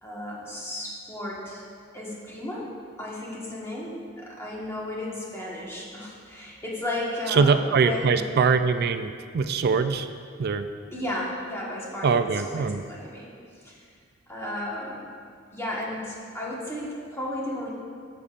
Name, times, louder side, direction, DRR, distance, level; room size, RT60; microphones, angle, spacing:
voice 1, 0.0-1.7 1.9-2.7 3.0-8.3 10.9-13.3 13.6-13.9 14.3-15.0 15.5-17.7, left 1 dB, 15° left, -5 dB, 1.4 m, -34 dB
voice 2, 7.3-10.1 10.4-10.7 12.0-12.8, right 5 dB, 50° right, 10 dB, 0.4 m, -23 dB
13.5 x 6.7 x 2.5 m, 2.2 s
head